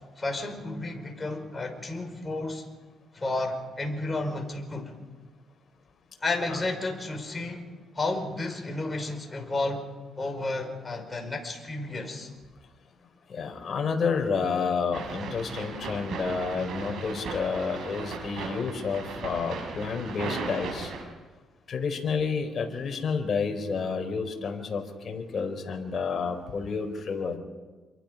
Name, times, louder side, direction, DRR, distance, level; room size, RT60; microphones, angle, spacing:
voice 1, 0.2-2.6 3.1-5.0 6.2-7.6 8.0-9.8 10.2-12.3, left 2 dB, 25° left, 3 dB, 5.3 m, -32 dB
voice 2, 13.3-20.9 21.7-27.4, left 5 dB, 50° left, 4 dB, 4.3 m, -30 dB
sound 1, 14.9-21.0, right 4 dB, 75° right, 7.0 m, -37 dB
28.5 x 23.0 x 5.5 m, 1.3 s
cardioid pair, 90°, 0 cm